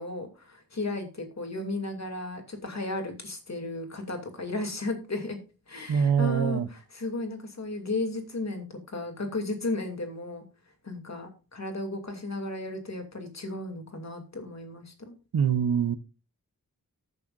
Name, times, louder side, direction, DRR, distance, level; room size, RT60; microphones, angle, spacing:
voice 1, 0.0-5.4 5.7-10.4 10.8-15.2, left 2 dB, 50° left, 2.6 m, -34 dB
voice 2, 5.9-6.7 15.3-16.0, right 7 dB, 85° right, 0.8 m, -24 dB
19.0 x 6.8 x 2.5 m
wide cardioid pair, 80°, 35 cm